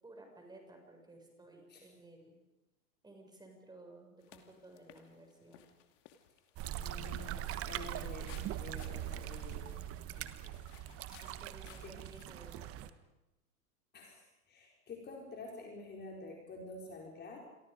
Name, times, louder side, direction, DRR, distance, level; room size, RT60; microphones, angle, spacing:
voice 1, 0.0-2.4 3.0-5.6 11.2-12.9, right 2 dB, 10° right, 2 dB, 6.3 m, -56 dB
sound 1, 4.2-12.2, left 11 dB, 50° left, 2.6 m, -61 dB
sound 2, 6.6-12.9, right 12 dB, 30° right, 1.3 m, -42 dB
voice 2, 6.7-9.9 10.1-10.6 11.8-12.0 13.9-17.4, left 3 dB, 20° left, 0 dB, 4.5 m, -49 dB
28.5 x 23.0 x 5.3 m, 0.98 s
hypercardioid pair, 110°, 45 cm